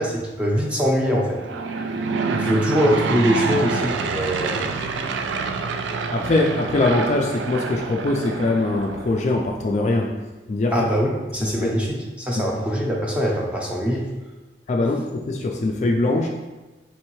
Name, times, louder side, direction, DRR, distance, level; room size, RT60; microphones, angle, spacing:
voice 1, 0.0-1.4 2.3-4.6 10.7-14.0, equal, 5° right, -3 dB, 0.6 m, -23 dB
Aircraft / Engine, 1.3-9.3, right 4 dB, 80° right, 0.3 m, -27 dB
voice 2, 6.1-10.1 10.5-10.9 11.4-11.7 12.4-12.5 14.7-16.3, left 2 dB, 40° left, 1 dB, 0.3 m, -22 dB
4.5 x 3.2 x 3.0 m, 1.1 s
head